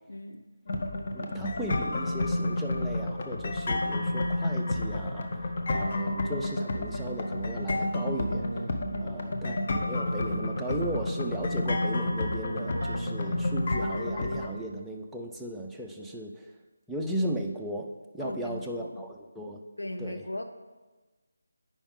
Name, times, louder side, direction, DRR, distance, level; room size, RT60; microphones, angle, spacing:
voice 1, 0.1-0.5 8.9-9.1 18.2-19.0 19.8-20.4, left 1 dB, 85° left, 5 dB, 0.6 m, -38 dB
sound 1, 0.7-14.5, left 2 dB, 40° left, 0.7 m, -30 dB
voice 2, 1.1-8.5 9.0-16.5 16.9-17.9 18.1-19.6 20.0-20.2, right 1 dB, ahead, -1 dB, 0.4 m, -36 dB
Keyboard (musical), 6.5-14.1, right 2 dB, 85° right, 0.3 m, -41 dB
8.7 x 5.4 x 3.6 m, 1.3 s
figure-of-eight pair, 165°, 0 cm